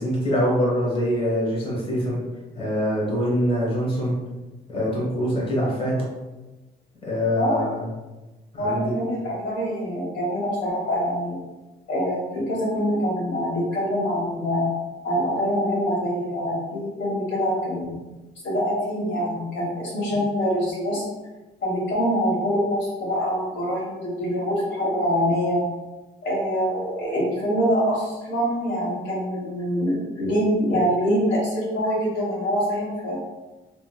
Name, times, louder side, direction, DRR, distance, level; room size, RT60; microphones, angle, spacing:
voice 1, 0.0-2.2 2.5-4.1 4.7-6.0 7.0-7.8 8.5-8.8, equal, 30° left, -5 dB, 1.3 m, -24 dB
voice 2, 7.4-7.7 8.6-11.4 11.9-14.7 15.0-18.0 18.4-21.0 21.6-25.6 26.2-33.2, equal, 70° left, -6 dB, 1.4 m, -24 dB
2.9 x 2.7 x 2.3 m, 1.1 s
cardioid pair, 90°, 20 cm